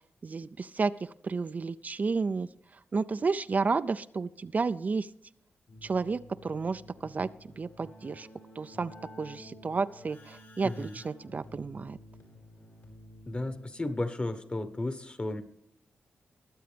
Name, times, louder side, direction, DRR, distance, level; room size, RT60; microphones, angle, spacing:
voice 1, 0.2-2.5 2.9-5.1 5.8-7.3 7.6-8.3 8.6-12.0, right 4 dB, 45° right, 12 dB, 0.4 m, -31 dB
Keyboard (musical), 5.7-14.0, left 1 dB, 75° left, 5.3 m, -52 dB
voice 2, 10.6-10.9 13.3-15.4, left 2 dB, 30° left, 11 dB, 1.2 m, -34 dB
22.0 x 7.8 x 3.4 m, 0.79 s
cardioid pair, 80°, 4 cm